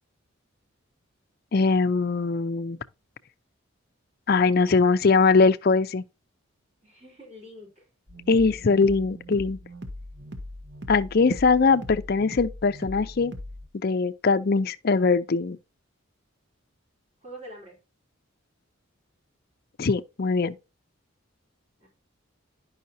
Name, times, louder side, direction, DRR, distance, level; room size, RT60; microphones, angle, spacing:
voice 1, 1.5-2.8 4.3-6.0 8.3-9.6 10.9-13.3 13.8-15.6 19.8-20.6, left 4 dB, 50° left, 0.5 m, -21 dB
voice 2, 6.8-7.9 17.2-17.8 20.4-20.6 21.8-21.9, equal, 30° right, 3.6 m, -45 dB
sound 1, 8.1-13.7, left 1 dB, 55° right, 1.4 m, -40 dB
10.5 x 5.6 x 2.7 m
head